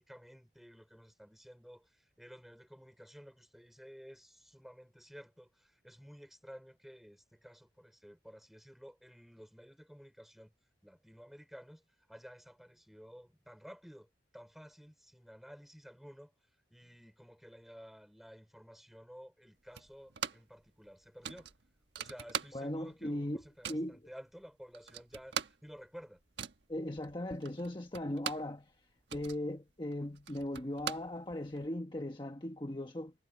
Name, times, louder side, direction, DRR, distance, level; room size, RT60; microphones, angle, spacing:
voice 1, 0.0-10.5 10.8-16.3 16.7-21.5 22.0-26.2, equal, ahead, 5.3 m, -53 dB
sound 1, 19.7-20.6 20.8-20.9 21.2-22.9 23.2-23.9 24.4-24.5 24.7-28.6 28.9-31.7, right 7 dB, 65° right, 1.4 m, -42 dB
voice 2, 22.5-23.4 23.7-24.0 26.7-28.7 29.1-33.1, left 1 dB, 25° left, 1.3 m, -38 dB
head